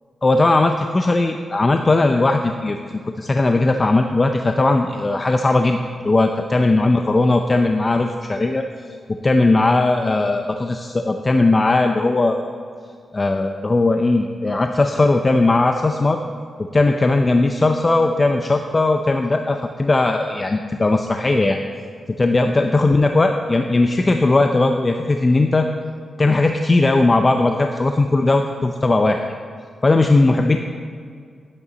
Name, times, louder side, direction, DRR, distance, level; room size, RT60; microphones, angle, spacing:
voice 1, 0.2-2.8 3.2-5.8 6.0-8.6 9.1-12.5 13.1-16.2 16.7-21.6 22.2-25.7 26.2-29.2 29.8-30.6, left 2 dB, 35° left, 5 dB, 0.6 m, -18 dB
11.0 x 8.5 x 4.1 m, 2.1 s
cardioid pair, 60°, 0 cm